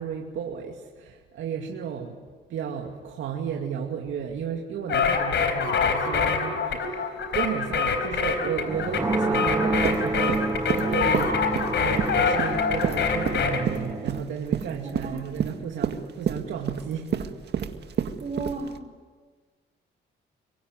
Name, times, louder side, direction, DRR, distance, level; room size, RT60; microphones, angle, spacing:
voice 1, 0.0-2.2 2.5-17.3, right 7 dB, 75° right, 0 dB, 2.5 m, -33 dB
sound 1, 4.9-13.6, left 5 dB, 65° left, 4.1 m, -26 dB
sound 2, 8.7-14.2, right 3 dB, 15° right, 1.6 m, -29 dB
sound 3, 9.8-18.8, right 8 dB, 55° right, 1.9 m, -29 dB
voice 2, 14.8-15.3 18.2-18.8, right 3 dB, 35° right, 4 dB, 3.7 m, -34 dB
26.0 x 23.5 x 9.5 m, 1.5 s
cardioid pair, 90°, 20 cm